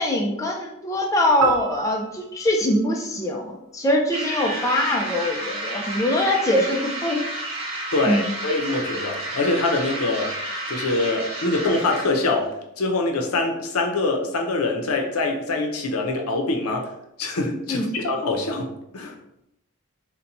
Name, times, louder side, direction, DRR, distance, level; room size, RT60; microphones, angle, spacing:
voice 1, 0.0-7.2 8.1-8.3 17.7-17.9, left 1 dB, 15° left, 0 dB, 0.3 m, -23 dB
sound 1, 1.4-3.9, right 7 dB, 70° right, 0.6 m, -31 dB
sound 2, 4.1-12.4, right 1 dB, 25° right, 0.9 m, -31 dB
voice 2, 7.9-10.3 10.7-16.9 17.2-19.1, left 2 dB, 90° left, 3 dB, 0.6 m, -24 dB
2.6 x 2.1 x 4.0 m, 0.82 s
head